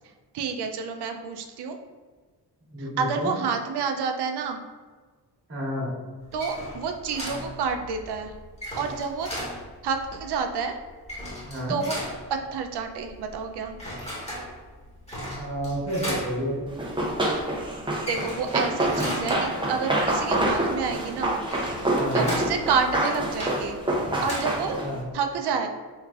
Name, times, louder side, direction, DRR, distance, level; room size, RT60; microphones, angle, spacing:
voice 1, 0.3-1.8 2.8-4.6 6.3-8.3 8.7-9.3 9.8-10.8 11.7-12.0 12.3-13.7 18.0-21.3 22.1-23.8 24.2-24.8 25.1-25.7, right 5 dB, 65° right, 5 dB, 0.5 m, -29 dB
voice 2, 2.7-3.3 5.5-5.9 11.4-11.8 15.4-16.7 21.9-22.3 24.8-25.0, equal, 30° right, -5 dB, 1.4 m, -30 dB
sound 1, 6.2-25.1, equal, 15° left, 1.2 m, -37 dB
Run, 16.8-25.0, right 1 dB, 10° right, 0.6 m, -26 dB
3.5 x 3.2 x 2.4 m, 1.4 s
cardioid pair, 85°, 42 cm